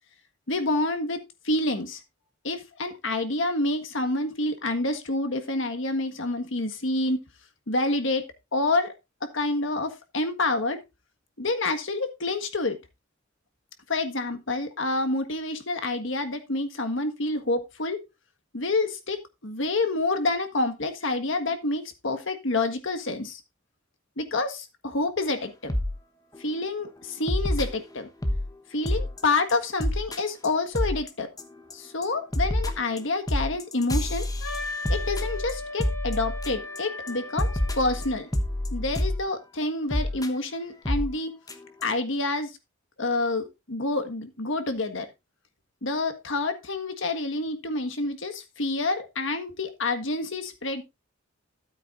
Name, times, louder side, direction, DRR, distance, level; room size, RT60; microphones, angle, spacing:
voice 1, 0.5-1.2 1.4-2.0 2.4-7.2 7.7-8.2 8.5-8.9 9.3-10.8 11.4-12.8 13.9-18.0 18.5-23.4 24.2-25.7 26.4-28.1 28.7-31.3 31.7-34.3 34.9-37.5 37.8-38.3 38.7-41.3 41.8-42.5 43.0-45.1 45.8-50.8, left 2 dB, 65° left, 7 dB, 1.6 m, -28 dB
sound 1, 25.7-25.9 26.3-26.6 27.3-28.5 28.9-29.2 29.5-29.6 29.8-30.2 30.4-30.5 30.7-31.1 31.4-31.7 32.0-36.8 37.1-37.2 37.4-39.2 39.9-40.3 40.9-41.1 41.5-41.6 41.8-41.9, left 1 dB, 20° left, 1.1 m, -27 dB
Wind instrument woodwind instrument, 34.4-38.2, left 2 dB, 80° left, 2.8 m, -37 dB
13.0 x 8.7 x 2.5 m, 0.22 s
head